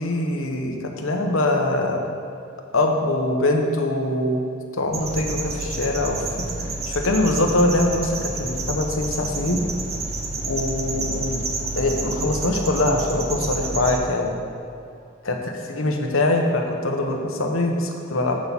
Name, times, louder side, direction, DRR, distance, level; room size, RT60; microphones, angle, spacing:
voice 1, 0.0-2.0 2.7-4.4 4.7-9.6 10.4-11.5 11.8-14.4 15.2-15.4 15.7-18.4, left 2 dB, 85° left, 2 dB, 1.1 m, -23 dB
sound 1, 4.9-14.0, right 2 dB, 30° right, 0.9 m, -29 dB
7.6 x 6.4 x 7.1 m, 2.5 s
head